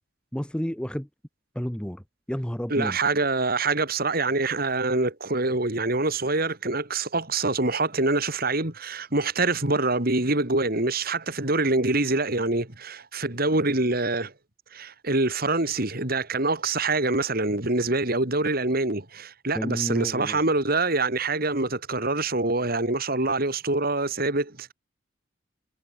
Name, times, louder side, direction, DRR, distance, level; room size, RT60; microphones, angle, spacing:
voice 1, 0.3-1.1 1.6-2.0 2.3-3.0 19.5-20.4, equal, 5° left, 0.8 m, -30 dB
voice 2, 2.7-14.3 14.7-24.7, right 2 dB, 50° right, 3.5 m, -25 dB
head